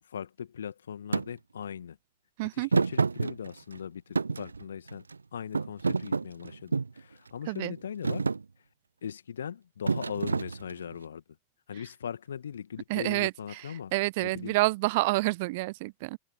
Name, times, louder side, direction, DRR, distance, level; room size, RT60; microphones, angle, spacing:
voice 1, 0.1-2.0 2.5-5.1 5.3-8.3 9.0-11.2 11.7-13.9 14.2-14.6, left 8 dB, 65° left, 2.0 m, -39 dB
Thump thud, 1.1-1.3 2.7-3.8 4.1-5.1 5.5-7.0 7.6-7.8 8.0-8.4 9.9-10.9, right 4 dB, 75° right, 0.3 m, -28 dB
voice 2, 2.4-2.7 7.5-7.7 12.9-16.2, right 22 dB, 50° right, 0.7 m, -28 dB
figure-of-eight pair, 90°, 0 cm